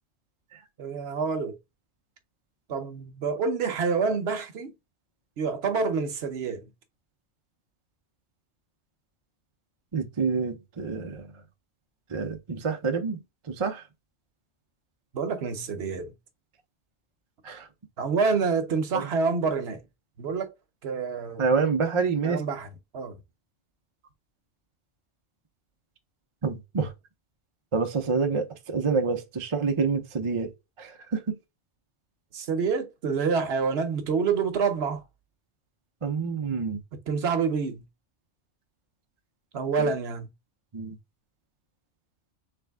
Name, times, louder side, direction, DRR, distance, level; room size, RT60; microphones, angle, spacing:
voice 1, 0.8-1.6 2.7-4.7 5.4-6.7 15.1-16.1 18.0-19.8 20.2-20.5 20.8-21.4 22.2-22.7 22.9-23.2 32.3-35.0 37.1-37.8 39.5-40.3, right 5 dB, 60° right, 1.0 m, -27 dB
voice 2, 9.9-11.3 12.1-13.2 13.5-13.8 17.4-17.7 18.9-19.1 21.4-22.4 26.4-26.9 27.7-30.5 30.8-31.4 36.0-36.8 39.8-39.9 40.7-41.0, right 5 dB, 35° right, 0.5 m, -27 dB
3.4 x 3.4 x 3.4 m
omnidirectional pair, 1.2 m